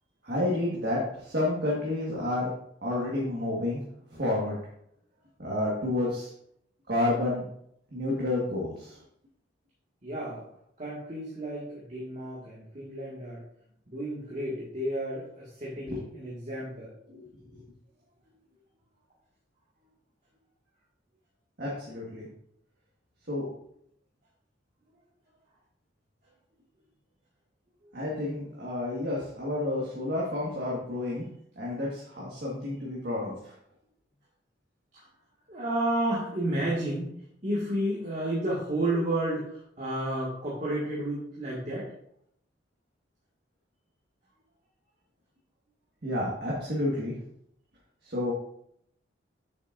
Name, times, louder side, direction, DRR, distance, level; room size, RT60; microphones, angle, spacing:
voice 1, 0.2-2.5 2.8-3.8 4.1-4.6 5.4-6.3 6.9-7.4 7.9-9.0 15.9-16.0 17.1-17.3 17.5-17.6 21.6-22.3 23.3-23.5 27.9-31.2 31.5-33.5 46.0-47.1 48.0-48.3, left 1 dB, 50° right, -5 dB, 1.5 m, -30 dB
voice 2, 10.0-10.5 10.8-13.4 13.9-16.9 35.5-37.1 37.4-41.9, right 1 dB, 35° right, -7 dB, 1.7 m, -31 dB
7.9 x 6.2 x 2.5 m, 0.72 s
head